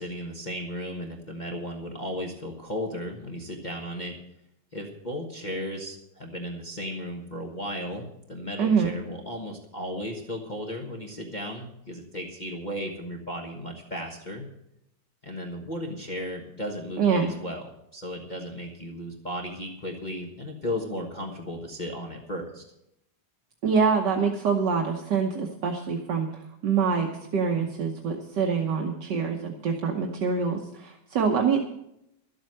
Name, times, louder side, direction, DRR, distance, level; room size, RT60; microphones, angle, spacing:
voice 1, 0.0-4.2 4.7-14.5 15.2-22.6, equal, 25° left, -1 dB, 1.3 m, -35 dB
voice 2, 8.6-8.9 17.0-17.3 23.6-26.3 26.6-31.6, right 5 dB, 70° right, 2 dB, 1.6 m, -25 dB
12.5 x 8.0 x 7.6 m, 0.81 s
omnidirectional pair, 2.0 m